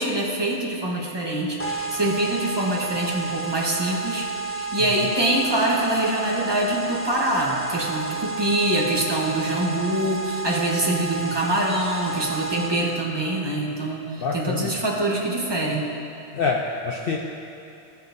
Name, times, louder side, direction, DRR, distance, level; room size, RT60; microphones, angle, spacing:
voice 1, 0.0-15.9, right 1 dB, 25° right, -3 dB, 0.9 m, -24 dB
sound 1, 1.6-13.0, right 4 dB, 25° left, 0.3 m, -31 dB
voice 2, 14.2-14.7 16.3-17.2, left 4 dB, 60° left, 0 dB, 0.7 m, -26 dB
15.5 x 5.4 x 2.6 m, 2.7 s
omnidirectional pair, 1.2 m